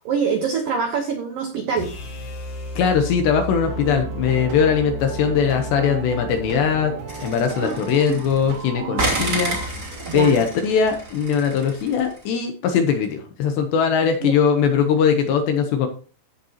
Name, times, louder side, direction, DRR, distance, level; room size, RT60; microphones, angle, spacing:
voice 1, 0.0-1.9 7.6-7.8 8.2-8.3 10.1-10.4 14.2-14.3, right 6 dB, 75° right, 3 dB, 2.0 m, -25 dB
sound 1, 1.8-7.9, left 1 dB, 50° left, 2.9 m, -34 dB
voice 2, 2.8-6.9 7.2-9.5 10.1-15.9, left 7 dB, 75° left, 5 dB, 2.7 m, -20 dB
sound 2, 3.6-9.7, right 6 dB, 55° right, 3.0 m, -34 dB
sound 3, 7.1-8.5 9.0-12.2, right 2 dB, 30° right, 2.2 m, -30 dB
16.0 x 6.6 x 2.9 m, 0.38 s
omnidirectional pair, 5.9 m